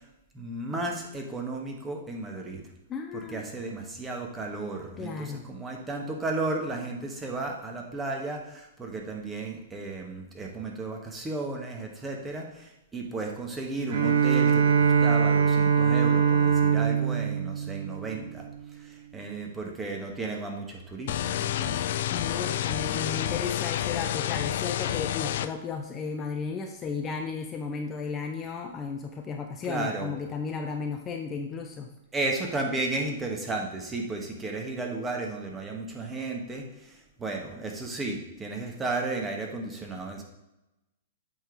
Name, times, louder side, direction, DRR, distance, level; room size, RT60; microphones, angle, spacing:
voice 1, 0.3-2.6 3.1-18.5 18.7-21.8 29.6-30.1 32.1-40.2, right 2 dB, 15° right, 1 dB, 1.4 m, -34 dB
voice 2, 2.9-3.4 5.0-5.4 22.1-31.9, left 5 dB, 25° left, 3 dB, 0.6 m, -34 dB
Bowed string instrument, 13.9-18.6, right 7 dB, 65° right, 0.8 m, -23 dB
sound 1, 21.1-25.5, left 11 dB, 60° left, 0.4 m, -29 dB
7.9 x 3.9 x 4.6 m, 0.94 s
hypercardioid pair, 110°, 0 cm